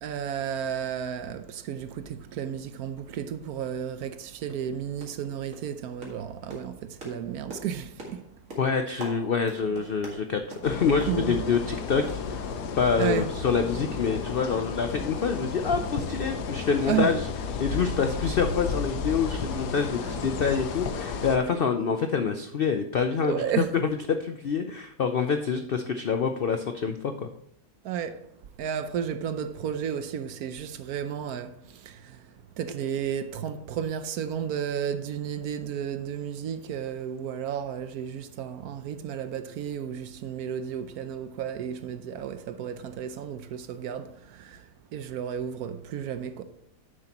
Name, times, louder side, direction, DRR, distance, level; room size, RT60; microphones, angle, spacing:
voice 1, 0.0-8.2 11.1-11.4 13.0-13.3 16.9-17.1 20.0-20.1 23.3-23.7 27.8-28.3 28.6-46.4, right 8 dB, 75° right, 1.1 m, -33 dB
sound 1, 4.0-4.2 4.5-4.7 5.0-5.3 5.5-12.7 13.0-13.8 14.0-14.2 14.5-14.6, right 1 dB, 55° right, 2.4 m, -45 dB
voice 2, 8.6-12.5 12.8-17.3 17.6-23.4 24.1-27.3, left 5 dB, 70° left, 0.5 m, -26 dB
sound 2, 10.6-21.4, left 5 dB, 90° left, 1.4 m, -33 dB
9.7 x 7.6 x 3.0 m
omnidirectional pair, 1.7 m